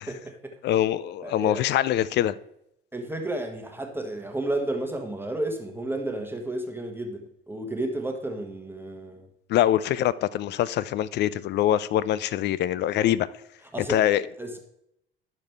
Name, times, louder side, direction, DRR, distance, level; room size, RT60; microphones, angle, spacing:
voice 1, 0.1-0.8 1.2-1.6 2.9-9.3 13.7-14.0 14.4-14.6, right 1 dB, 5° right, 1.2 m, -32 dB
voice 2, 0.6-2.3 9.5-13.3 13.9-14.2, left 12 dB, 35° left, 0.4 m, -24 dB
10.5 x 6.5 x 3.4 m
figure-of-eight pair, 55°, 30 cm